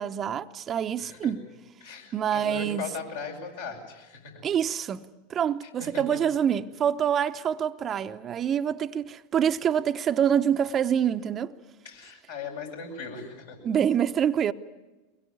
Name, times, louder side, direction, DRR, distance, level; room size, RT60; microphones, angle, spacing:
voice 1, 0.0-1.4 2.1-2.9 4.4-11.5 13.6-14.5, right 8 dB, 35° right, 0.9 m, -26 dB
voice 2, 1.0-1.3 1.8-4.4 5.8-6.0 11.8-13.6, left 5 dB, 75° left, 7.9 m, -38 dB
23.5 x 21.5 x 9.5 m
hypercardioid pair, 90°, 0 cm